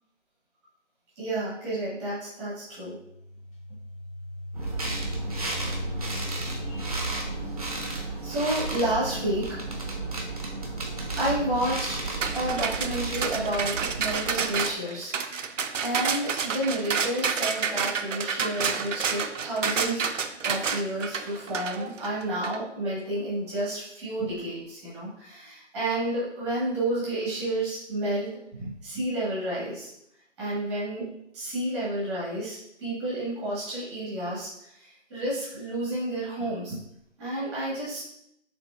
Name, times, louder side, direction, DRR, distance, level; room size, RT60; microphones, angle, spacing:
voice 1, 1.2-3.0 6.1-6.9 8.0-9.8 11.2-15.2 15.7-20.1 20.4-29.9 30.4-31.1 31.3-36.8 37.2-38.0, right 1 dB, 5° right, -9 dB, 0.9 m, -31 dB
sound 1, 2.8-8.4, left 1 dB, 25° left, 1.1 m, -38 dB
sound 2, 4.5-14.7, right 3 dB, 30° right, 0.6 m, -33 dB
sound 3, 12.2-22.6, right 6 dB, 85° right, 0.6 m, -29 dB
6.7 x 2.9 x 2.3 m, 0.75 s
figure-of-eight pair, 160°, 37 cm